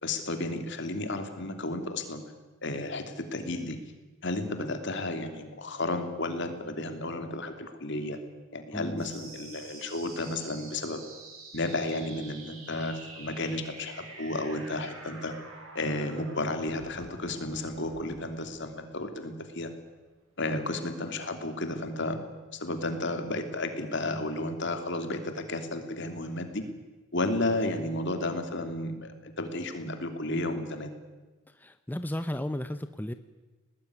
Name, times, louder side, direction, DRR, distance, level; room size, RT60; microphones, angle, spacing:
voice 1, 0.0-2.2 2.6-3.8 4.2-8.2 8.5-11.0 11.5-15.3 15.7-19.7 20.4-22.2 22.5-26.6 27.1-30.9, left 2 dB, 55° left, 7 dB, 3.0 m, -32 dB
voice 2, 8.7-9.1 31.5-33.1, left 1 dB, 10° left, 10 dB, 0.7 m, -34 dB
sound 1, 9.0-20.0, right 3 dB, 85° right, 6.4 m, -48 dB
20.5 x 19.5 x 9.8 m, 1.2 s
head